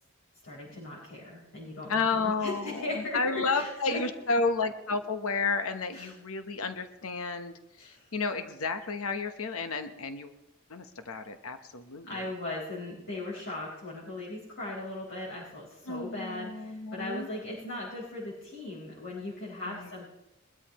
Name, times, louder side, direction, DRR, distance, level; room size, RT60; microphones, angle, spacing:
voice 1, 0.4-4.0 5.9-6.2 7.8-8.1 12.0-20.1, left 2 dB, 60° left, -8 dB, 4.2 m, -38 dB
voice 2, 1.9-10.3 10.7-12.2 15.9-17.3 19.7-19.9, left 4 dB, 80° left, 8 dB, 1.0 m, -32 dB
22.0 x 13.0 x 3.0 m, 0.92 s
head